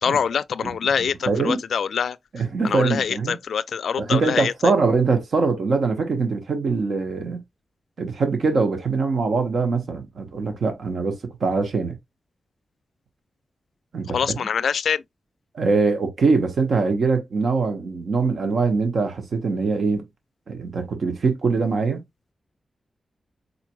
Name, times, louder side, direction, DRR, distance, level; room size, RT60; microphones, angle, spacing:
voice 1, 0.0-2.2 2.6-4.7 14.1-15.0, left 7 dB, 85° left, 0.3 m, -24 dB
voice 2, 0.6-1.6 2.3-3.4 4.0-7.4 8.0-12.0 13.9-14.5 15.5-20.0 20.5-22.0, right 4 dB, 60° right, 1.1 m, -23 dB
4.6 x 4.1 x 2.2 m
wide cardioid pair, 175°, 0 cm